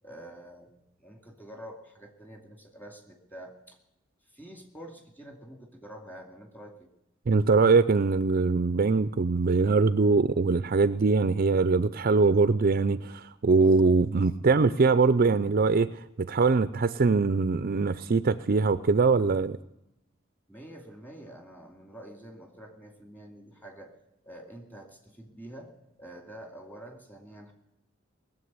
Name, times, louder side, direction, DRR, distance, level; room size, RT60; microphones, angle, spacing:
voice 1, 0.0-3.8 4.3-6.9 20.5-23.9 24.2-25.7 26.0-27.5, right 1 dB, 10° left, 2.3 m, -47 dB
voice 2, 7.3-19.6, right 4 dB, 45° right, 0.5 m, -23 dB
20.0 x 7.6 x 9.6 m
head